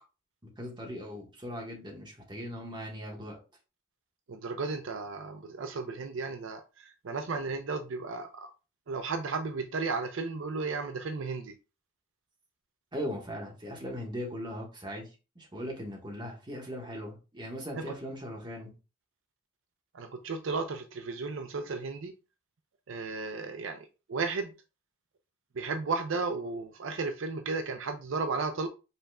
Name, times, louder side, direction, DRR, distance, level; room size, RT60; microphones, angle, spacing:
voice 1, 0.4-3.4 12.9-15.1 15.3-18.7, equal, 20° right, 1.4 m, -39 dB
voice 2, 4.3-8.5 8.9-11.6 17.7-18.0 19.9-22.1 22.9-24.5 25.6-28.7, right 4 dB, 65° right, 0.5 m, -34 dB
5.5 x 4.1 x 2.3 m
head